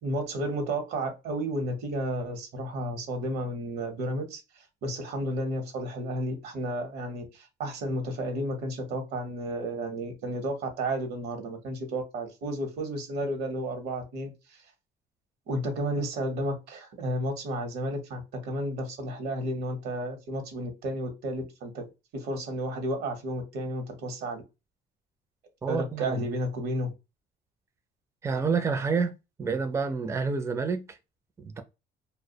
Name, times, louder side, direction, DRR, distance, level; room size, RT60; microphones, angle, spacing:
voice 1, 0.0-14.6 15.5-21.8 22.1-24.4 25.7-26.9, right 1 dB, 75° right, 0.8 m, -32 dB
voice 2, 25.6-26.2 28.2-31.0 31.4-31.6, right 5 dB, 15° right, 0.4 m, -29 dB
2.3 x 2.0 x 2.7 m
cardioid pair, 110°, 17 cm